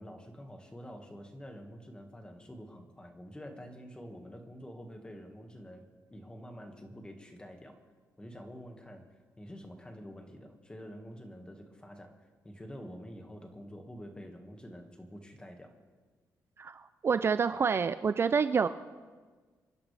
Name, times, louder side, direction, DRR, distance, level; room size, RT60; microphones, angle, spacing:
voice 1, 0.0-7.8 8.2-9.0 9.4-15.7, equal, 15° left, 4 dB, 1.8 m, -47 dB
voice 2, 16.6-18.7, right 6 dB, 40° right, 12 dB, 0.4 m, -28 dB
27.5 x 11.0 x 3.4 m, 1.4 s
cardioid pair, 115°, 7 cm